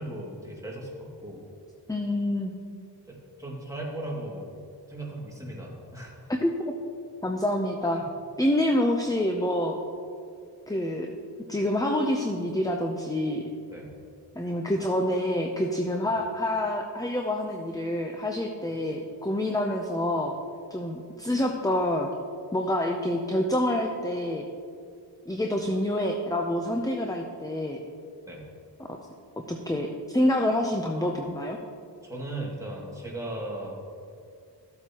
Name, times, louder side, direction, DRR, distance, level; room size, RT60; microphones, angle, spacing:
voice 1, 0.0-1.4 3.1-4.5 4.9-6.3 7.9-8.0 13.7-13.9 16.0-16.1 28.2-28.4 30.9-31.1 32.0-33.8, right 1 dB, 10° right, -4 dB, 2.4 m, -37 dB
voice 2, 1.9-2.5 6.3-6.7 7.2-8.0 8.4-9.7 10.7-11.1 11.5-13.4 14.3-20.3 20.7-22.1 22.5-24.5 25.3-27.8 29.5-31.6, left 1 dB, 10° left, 3 dB, 0.7 m, -27 dB
14.0 x 8.2 x 3.0 m, 2.3 s
wide cardioid pair, 75°, 42 cm